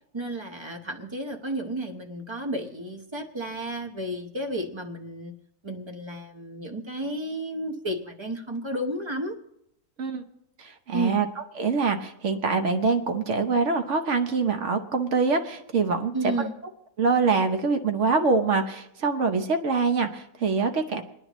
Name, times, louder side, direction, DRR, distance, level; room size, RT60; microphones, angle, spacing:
voice 1, 0.1-5.3 5.6-9.3 10.9-11.2 16.1-16.6, right 1 dB, 25° right, 4 dB, 0.7 m, -32 dB
voice 2, 10.6-11.3 11.6-16.1 16.4-16.5 17.0-21.0, right 4 dB, 50° right, 6 dB, 1.1 m, -24 dB
28.5 x 9.9 x 3.0 m, 0.81 s
omnidirectional pair, 1.8 m